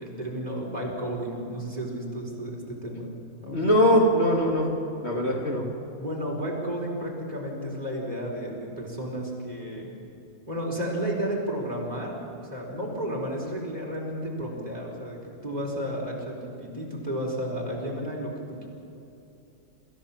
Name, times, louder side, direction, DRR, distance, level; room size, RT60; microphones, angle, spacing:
voice 1, 0.0-3.1 3.4-3.7 5.3-5.4 6.0-9.9 10.5-18.7, equal, 25° right, -3 dB, 4.9 m, -32 dB
voice 2, 3.5-4.7 5.0-5.6, equal, 45° left, -1 dB, 2.9 m, -21 dB
27.5 x 15.5 x 7.4 m, 2.9 s
omnidirectional pair, 1.5 m